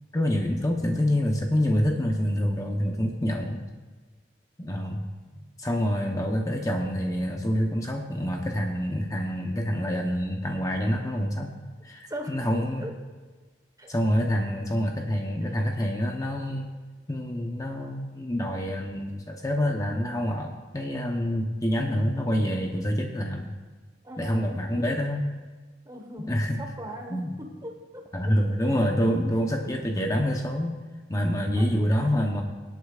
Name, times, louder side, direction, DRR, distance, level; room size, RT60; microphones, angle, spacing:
voice 1, 0.1-3.6 4.6-5.0 5.6-11.5 11.8-12.9 13.9-16.7 17.1-23.5 24.2-25.3 26.3-26.6 27.1-27.3 28.1-30.8 31.1-32.4, equal, 20° left, 2 dB, 0.8 m, -27 dB
voice 2, 12.1-12.4 12.8-13.0 13.8-13.9 15.4-15.6 24.0-24.6 25.8-28.3 28.7-28.8 29.1-29.4 29.6-29.7 31.5-31.7, equal, 20° right, 3 dB, 1.2 m, -40 dB
24.5 x 8.3 x 2.4 m, 1.3 s
head